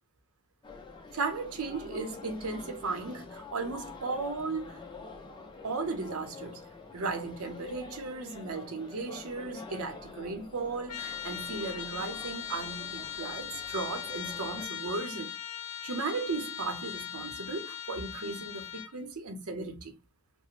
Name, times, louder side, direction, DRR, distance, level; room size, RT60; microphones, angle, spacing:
sound 1, 0.6-14.7, left 4 dB, 20° left, 0.4 m, -47 dB
voice 1, 1.1-4.9 5.6-6.6 6.9-15.3 15.8-19.9, right 3 dB, 75° right, 0.7 m, -36 dB
Trumpet, 10.9-19.0, left 9 dB, 85° left, 0.5 m, -40 dB
3.0 x 2.0 x 2.4 m
head